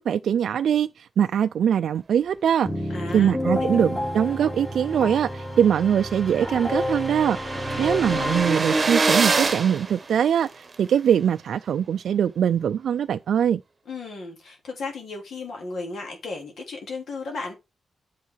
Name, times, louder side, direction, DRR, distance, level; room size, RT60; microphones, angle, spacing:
voice 1, 0.0-2.7 3.1-7.4 7.8-13.6, right 8 dB, 75° right, 0.3 m, -22 dB
sound 1, 2.6-9.4, left 1 dB, 10° left, 2.7 m, -30 dB
voice 2, 2.9-3.8 7.5-7.9 13.9-17.6, left 3 dB, 65° left, 3.0 m, -35 dB
sound 2, 5.2-5.3 5.6-5.7 5.9-10.7, right 3 dB, 30° right, 1.2 m, -26 dB
8.2 x 5.6 x 4.6 m
wide cardioid pair, 145°, 0 cm